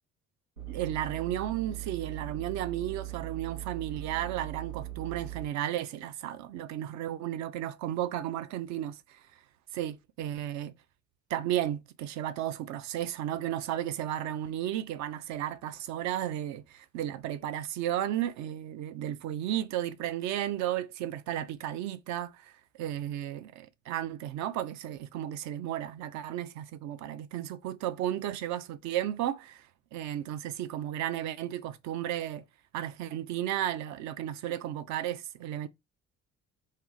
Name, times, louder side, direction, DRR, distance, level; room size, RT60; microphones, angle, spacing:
sound 1, 0.6-5.4, right 14 dB, 90° right, 1.0 m, -40 dB
voice 1, 0.7-9.2 9.7-10.7 11.3-22.5 22.8-32.4 32.7-35.7, right 12 dB, 45° right, 0.5 m, -34 dB
2.6 x 2.5 x 3.9 m
figure-of-eight pair, 45°, 40 cm